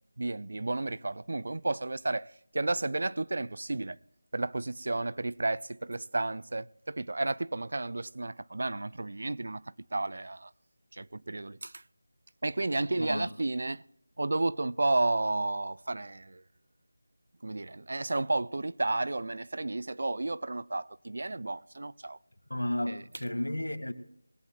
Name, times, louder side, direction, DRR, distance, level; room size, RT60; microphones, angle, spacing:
voice 1, 0.2-4.0 4.3-9.6 9.9-10.5 10.9-11.8 12.4-13.8 14.2-16.4 17.4-22.2 22.9-23.0, right 2 dB, 55° right, 0.4 m, -32 dB
voice 2, 13.0-13.3 22.5-23.9, left 1 dB, 80° left, 1.8 m, -33 dB
21.5 x 15.0 x 2.3 m
figure-of-eight pair, 165°, 0 cm